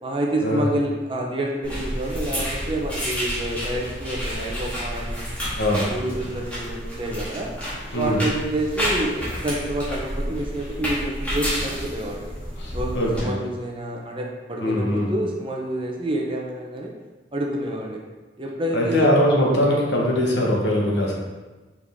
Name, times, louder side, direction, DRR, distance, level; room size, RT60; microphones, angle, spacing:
voice 1, 0.0-5.2 5.7-7.5 7.9-12.3 12.7-16.9 17.3-18.0 18.4-19.1, right 1 dB, 30° right, -1 dB, 0.8 m, -28 dB
sound 1, 1.6-13.2, equal, 10° left, 2.0 m, -30 dB
voice 2, 5.6-6.2 7.9-8.2 12.6-13.3 14.6-15.1 18.7-21.1, equal, 60° left, -2 dB, 1.3 m, -22 dB
6.1 x 4.8 x 3.6 m, 1.2 s
head